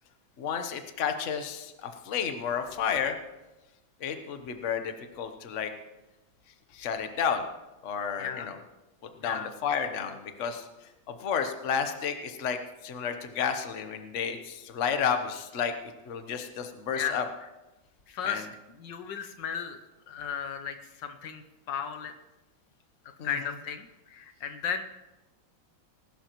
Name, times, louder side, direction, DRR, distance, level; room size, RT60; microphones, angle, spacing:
voice 1, 0.4-3.2 4.0-5.7 6.7-7.4 7.8-8.6 9.2-10.7 11.1-15.7 16.0-17.2 18.2-18.4 23.2-23.4, left 7 dB, 45° left, 7 dB, 1.2 m, -31 dB
voice 2, 18.1-18.5 18.8-19.8 20.1-21.4 21.7-22.1 23.2-24.8, left 7 dB, 70° left, 7 dB, 1.4 m, -34 dB
20.0 x 12.0 x 3.1 m, 1.0 s
omnidirectional pair, 2.1 m